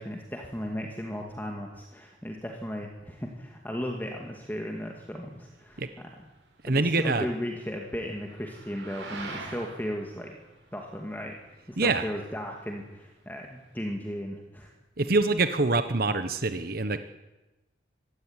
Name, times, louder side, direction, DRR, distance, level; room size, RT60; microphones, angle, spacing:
voice 1, 0.0-6.1 6.7-10.4 10.7-11.4 11.7-14.7, equal, 10° left, 1 dB, 2.3 m, -36 dB
sound 1, 4.0-13.9, right 3 dB, 85° right, 6.6 m, -47 dB
voice 2, 6.6-7.3 11.8-12.0 15.0-17.0, right 3 dB, 50° right, 10 dB, 1.1 m, -25 dB
25.0 x 16.0 x 9.8 m, 1.1 s
head